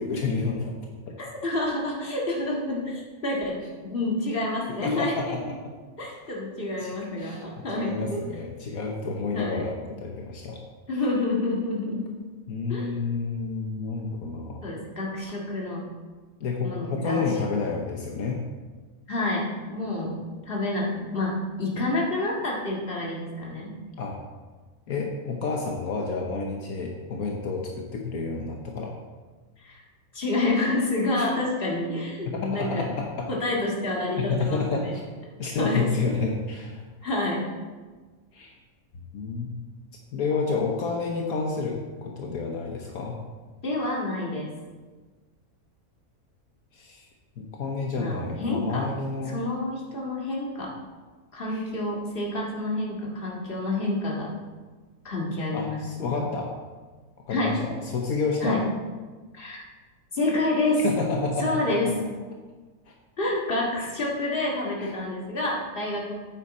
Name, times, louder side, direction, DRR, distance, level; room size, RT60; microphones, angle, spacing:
voice 1, 0.0-0.7 1.1-1.2 4.8-5.7 6.0-6.1 6.8-10.6 12.5-14.6 16.4-18.4 24.0-24.2 24.9-28.9 31.2-31.3 32.3-33.3 34.2-35.0 35.4-36.8 38.3-38.5 39.1-39.6 40.1-43.2 46.7-47.0 47.4-49.4 51.5-51.6 55.5-56.5 57.3-58.6 60.8-61.9 62.9-63.0 64.8-64.9, left 4 dB, 75° left, 1 dB, 1.4 m, -30 dB
voice 2, 1.2-3.6 3.8-5.4 6.0-8.2 9.3-9.6 10.9-12.0 12.7-12.9 14.6-15.9 16.6-17.2 19.1-20.1 20.5-23.7 29.6-29.8 30.1-32.9 33.3-34.9 35.6-35.9 37.0-37.5 43.6-44.5 48.0-48.8 49.3-50.7 51.3-54.3 55.0-56.2 57.3-57.5 58.4-58.6 59.3-59.6 60.1-60.8 61.4-61.9 63.2-66.1, left 2 dB, 40° left, -3 dB, 2.1 m, -28 dB
9.2 x 8.2 x 4.2 m, 1.4 s
omnidirectional pair, 1.6 m